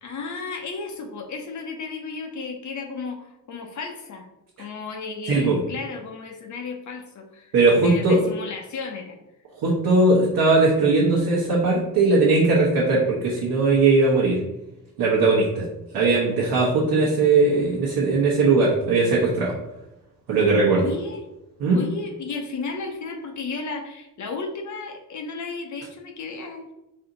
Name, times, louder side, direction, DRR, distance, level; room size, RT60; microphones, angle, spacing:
voice 1, 0.0-4.3 4.6-7.5 7.8-9.2 20.7-21.2 21.7-26.7, left 4 dB, 55° left, 3 dB, 0.7 m, -34 dB
voice 2, 5.3-5.6 7.5-8.2 9.6-14.4 15.0-15.7 15.9-19.5 20.3-20.8 21.6-21.8, right 3 dB, 85° right, -5 dB, 1.1 m, -19 dB
4.2 x 2.8 x 3.9 m, 0.96 s
cardioid pair, 115°, 35 cm